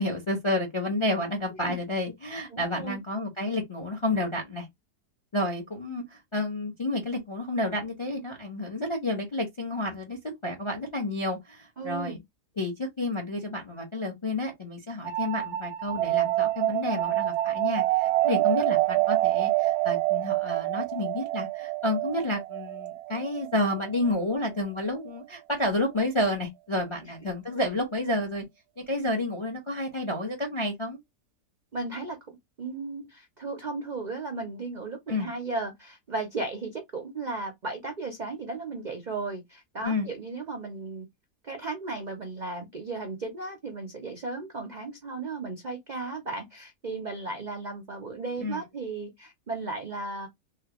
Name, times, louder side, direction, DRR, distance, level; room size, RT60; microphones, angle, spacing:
voice 1, 0.0-4.7 5.3-12.2 12.6-28.4 28.8-31.0 35.1-35.3 39.8-40.1 48.4-48.6, left 1 dB, 40° left, 0.4 m, -30 dB
voice 2, 2.5-3.0 11.8-12.2 18.3-18.4 27.0-27.1 31.7-32.2 32.6-41.1 41.4-50.3, right 3 dB, 60° right, 0.4 m, -35 dB
sound 1, 15.0-24.4, right 16 dB, 85° right, 1.1 m, -27 dB
3.3 x 2.4 x 2.9 m
omnidirectional pair, 1.6 m